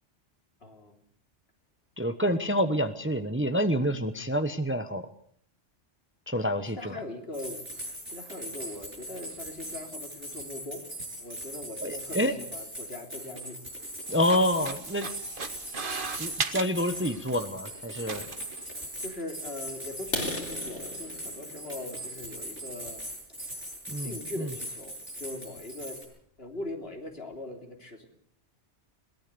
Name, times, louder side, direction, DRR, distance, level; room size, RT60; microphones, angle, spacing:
voice 1, 0.6-1.0 6.7-10.9 11.2-13.6 19.0-23.0 24.0-26.0 26.4-28.1, left 2 dB, 55° left, 3 dB, 3.6 m, -41 dB
voice 2, 2.0-5.1 6.3-7.0 11.8-12.3 14.1-15.1 16.2-18.3 23.9-24.5, equal, 10° right, 9 dB, 1.0 m, -28 dB
sound 1, 7.3-26.0, equal, 80° right, 8.1 m, -40 dB
sound 2, 14.1-17.4 18.1-18.6, right 4 dB, 45° right, 1.5 m, -37 dB
sound 3, 20.0-23.8 24.3-24.5 25.0-25.1 25.5-25.6 26.0-26.1 26.5-26.6 26.8-27.3, left 2 dB, 75° left, 3.9 m, -38 dB
22.0 x 18.0 x 6.9 m, 0.62 s
omnidirectional pair, 1.2 m